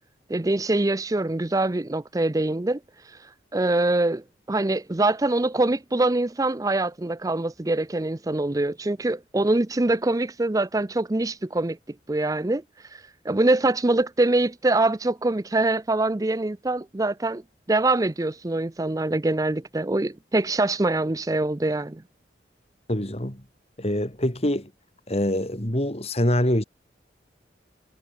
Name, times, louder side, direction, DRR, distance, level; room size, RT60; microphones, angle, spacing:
voice 1, 0.3-2.8 3.1-3.2 3.5-11.8 12.1-12.6 12.9-17.4 17.7-22.0, right 2 dB, 20° right, 0.5 m, -24 dB
voice 2, 22.9-23.4 23.8-24.7 25.1-26.6, left 1 dB, 35° left, 3.7 m, -24 dB
head